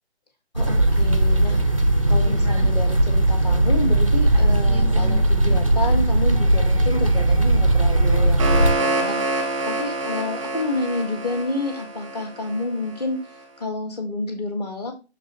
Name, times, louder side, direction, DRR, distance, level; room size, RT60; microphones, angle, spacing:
voice 1, 0.5-1.6 2.1-14.9, left 2 dB, 35° left, 5 dB, 1.8 m, -29 dB
sound 1, 0.6-8.8, right 1 dB, 30° right, 0.4 m, -18 dB
sound 2, 8.0-13.0, right 2 dB, 5° right, 0.9 m, -27 dB
6.5 x 5.9 x 3.0 m, 0.29 s
hypercardioid pair, 170°, 34 cm